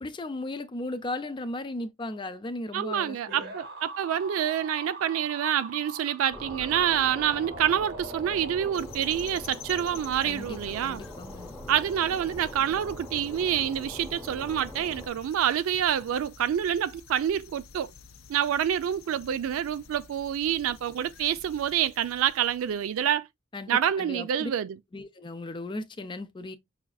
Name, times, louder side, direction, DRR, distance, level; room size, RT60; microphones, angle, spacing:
voice 1, 0.0-3.5 10.2-11.5 23.5-24.5 24.9-26.6, left 2 dB, 25° left, 0.4 m, -36 dB
voice 2, 2.7-11.0 11.7-17.9 18.3-23.3 23.7-24.8, right 9 dB, 90° right, 0.3 m, -27 dB
sound 1, 3.3-9.3, right 2 dB, 55° right, 0.7 m, -42 dB
sound 2, 6.3-15.1, left 1 dB, ahead, 0.9 m, -43 dB
sound 3, 8.7-23.1, left 6 dB, 80° left, 0.5 m, -50 dB
5.7 x 2.4 x 2.2 m
head